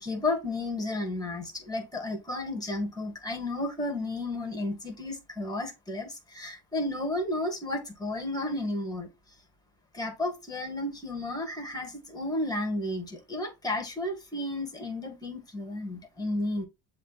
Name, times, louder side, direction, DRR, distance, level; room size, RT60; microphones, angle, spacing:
voice 1, 0.0-9.1 9.9-16.7, left 2 dB, 10° left, 1.7 m, -32 dB
7.3 x 2.9 x 2.4 m
cardioid pair, 90°, 44 cm